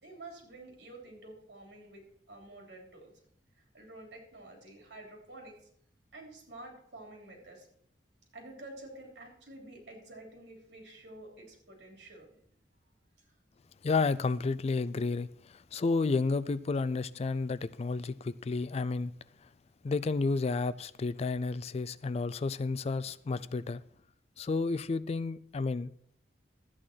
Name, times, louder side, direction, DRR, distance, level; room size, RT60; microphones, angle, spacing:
voice 1, 0.0-3.1 3.5-5.6 6.1-7.7 8.3-12.4, right 2 dB, 75° right, 3.4 m, -49 dB
voice 2, 13.8-19.1 19.8-23.8 24.4-25.9, left 3 dB, 35° left, 0.4 m, -31 dB
12.5 x 8.6 x 4.4 m
head